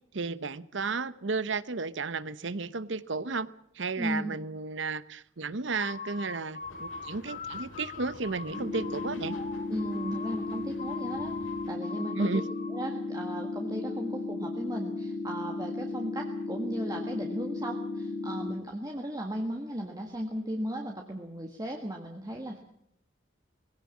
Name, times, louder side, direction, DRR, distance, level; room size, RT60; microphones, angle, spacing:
voice 1, 0.1-3.5 3.7-9.4 12.2-12.4, right 4 dB, 70° right, 16 dB, 0.9 m, -33 dB
voice 2, 4.0-4.4 9.7-11.3 11.7-12.3 12.7-22.6, right 1 dB, 20° right, 2 dB, 1.7 m, -36 dB
sound 1, 5.6-12.9, left 5 dB, 40° left, 1.1 m, -41 dB
sound 2, 6.6-11.7, left 2 dB, 80° left, 3.4 m, -50 dB
sound 3, 8.5-18.5, left 3 dB, 15° left, 3.5 m, -35 dB
20.5 x 17.0 x 8.4 m, 0.74 s
head